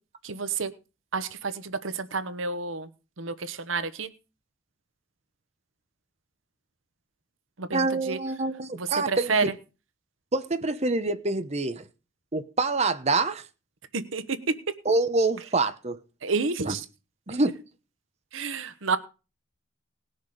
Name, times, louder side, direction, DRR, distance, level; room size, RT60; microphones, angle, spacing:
voice 1, 0.2-0.7 1.1-2.9 3.2-4.1 7.6-8.2 8.7-9.5 13.9-14.5 16.2-16.8 18.3-19.0, right 4 dB, 85° right, 1.1 m, -29 dB
voice 2, 7.7-9.5 10.3-11.8 12.3-13.4 14.8-16.0 16.7-16.8 17.3-17.6, right 3 dB, 35° right, 1.0 m, -26 dB
19.0 x 6.6 x 5.0 m
head